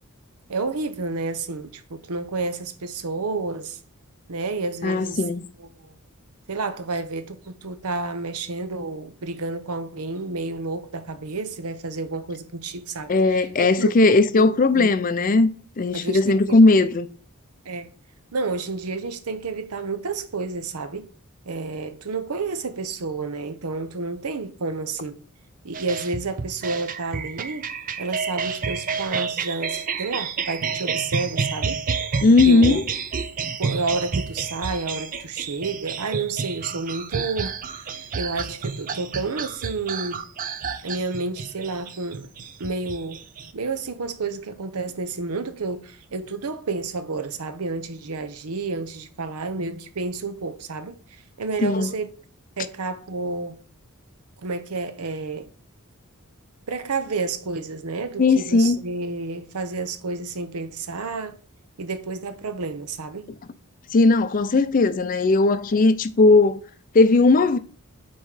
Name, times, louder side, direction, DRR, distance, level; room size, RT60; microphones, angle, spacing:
voice 1, 0.5-3.8 4.3-5.2 5.6-6.0 6.5-14.9 15.9-16.7 17.6-17.9 18.3-21.1 21.5-25.2 25.6-31.8 32.3-32.8 33.6-40.2 40.8-42.3 42.6-43.2 43.5-52.1 52.6-53.6 54.4-55.5 56.7-61.4 61.8-63.3, right 3 dB, 80° right, 0.7 m, -30 dB
voice 2, 4.8-5.5 13.1-15.5 15.8-17.1 32.2-32.9 51.6-51.9 58.2-58.8 63.9-66.6 66.9-67.6, left 3 dB, 40° left, 0.4 m, -17 dB
sound 1, 25.7-43.5, right 5 dB, 40° right, 0.5 m, -30 dB
5.4 x 4.4 x 4.8 m
head